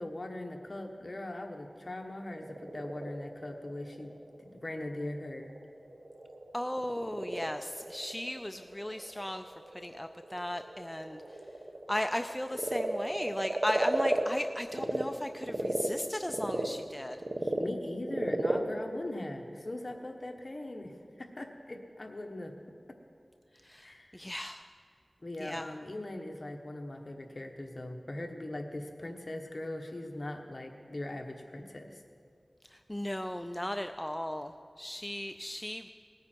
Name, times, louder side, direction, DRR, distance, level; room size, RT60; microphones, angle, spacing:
voice 1, 0.0-5.5 17.4-20.9 21.2-22.5 23.8-24.2 25.2-32.0, left 1 dB, 45° left, 3 dB, 1.3 m, -40 dB
Frog, 2.2-15.0 15.4-20.0, right 2 dB, 75° right, 1.0 m, -35 dB
voice 2, 6.5-9.4 9.7-11.2 11.9-17.2 23.6-24.7 25.4-25.7 32.7-35.9, left 1 dB, 15° left, 7 dB, 0.4 m, -36 dB
18.5 x 9.5 x 4.5 m, 2.3 s
wide cardioid pair, 60°, 0 cm